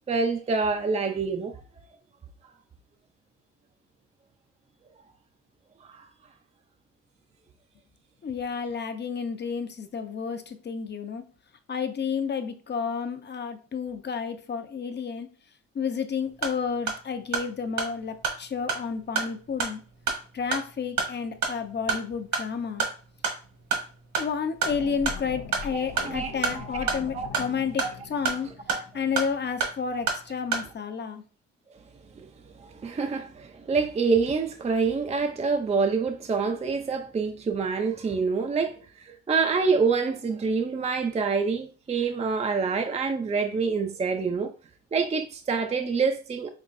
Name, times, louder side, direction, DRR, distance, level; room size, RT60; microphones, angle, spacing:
voice 1, 0.1-1.5 5.8-6.1 25.7-27.3 27.8-27.9 28.7-28.8 32.2-32.3 32.6-44.5 44.9-46.5, right 4 dB, 20° right, 0.5 m, -27 dB
voice 2, 8.2-11.2 11.7-15.3 15.7-19.8 20.3-22.8 24.2-28.5 28.9-31.2, left 6 dB, 35° left, 0.7 m, -31 dB
sound 1, 16.2-30.7, right 5 dB, 70° right, 1.6 m, -32 dB
sound 2, 24.6-29.6, left 6 dB, 80° left, 0.7 m, -41 dB
5.3 x 3.0 x 2.5 m
cardioid pair, 90°, 30 cm